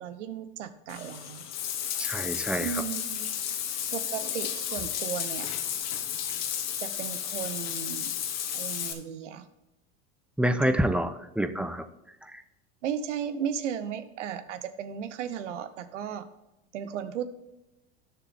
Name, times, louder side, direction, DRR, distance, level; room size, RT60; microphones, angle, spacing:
voice 1, 0.0-1.4 2.6-3.4 3.9-5.5 6.8-8.1 8.5-9.5 10.6-10.9 12.8-16.3 16.7-17.3, right 8 dB, 90° right, 12 dB, 0.9 m, -35 dB
Bathtub (filling or washing), 0.9-8.9, left 9 dB, 50° left, 1.4 m, -33 dB
voice 2, 2.0-2.7 10.4-11.9 12.3-12.4, right 1 dB, 5° right, 10 dB, 0.6 m, -27 dB
10.0 x 6.8 x 3.5 m, 0.97 s
hypercardioid pair, 90°, 35 cm